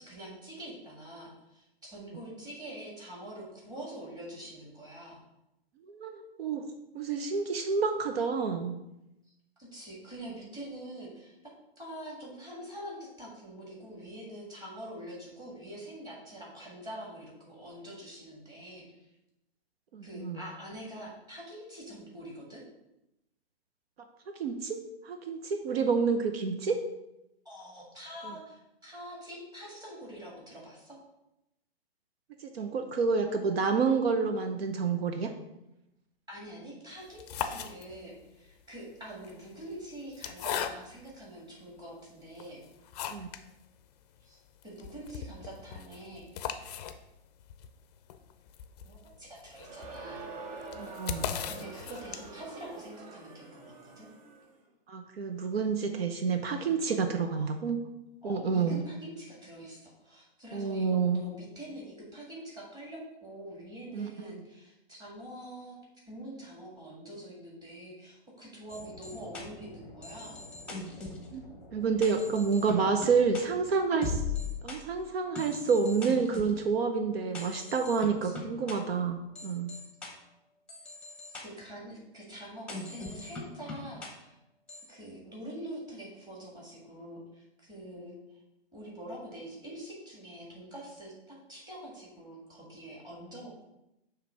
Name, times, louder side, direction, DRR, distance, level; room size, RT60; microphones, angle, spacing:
voice 1, 0.1-5.2 9.6-18.8 20.0-22.6 27.5-31.0 36.3-42.6 44.2-44.4 44.6-46.8 48.8-50.2 51.5-54.1 57.4-57.5 58.2-65.8 66.1-70.4 78.2-78.3 81.4-84.4 84.9-88.4 88.7-93.6, right 1 dB, 15° right, -4 dB, 1.7 m, -45 dB
voice 2, 5.9-6.6 6.9-8.8 19.9-20.4 24.4-24.8 25.0-26.8 32.4-35.3 43.1-43.3 50.7-51.4 54.9-57.8 58.2-58.8 60.5-61.2 63.9-64.1 71.3-71.4 71.7-74.2 74.6-79.7, right 5 dB, 75° right, 7 dB, 0.7 m, -29 dB
sound 1, 37.0-38.2 39.1-41.2 41.8-41.9 42.3-43.5 43.8-43.9 44.2-44.3 44.6-52.5, left 8 dB, 40° left, 0.5 m, -39 dB
Crowd, 49.5-54.5, right 3 dB, 40° right, 0.9 m, -45 dB
sound 2, 68.7-74.8 75.3-76.6 77.3-78.7 79.3-80.1 80.7-81.4 82.7-84.1 84.7-84.8, left 3 dB, 5° left, 0.9 m, -40 dB
6.8 x 3.2 x 4.7 m, 0.90 s
hypercardioid pair, 135°, 31 cm